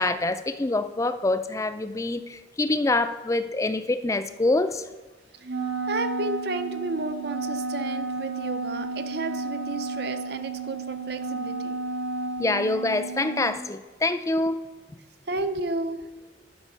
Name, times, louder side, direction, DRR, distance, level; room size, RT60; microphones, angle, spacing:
voice 1, 0.0-4.9 12.4-14.6, left 2 dB, 15° left, 11 dB, 0.4 m, -25 dB
Wind instrument woodwind instrument, 5.4-13.6, right 3 dB, 90° right, 1.7 m, -32 dB
voice 2, 5.9-11.8 15.3-16.1, right 2 dB, 60° right, 10 dB, 0.6 m, -32 dB
11.5 x 5.3 x 5.4 m, 1.2 s
head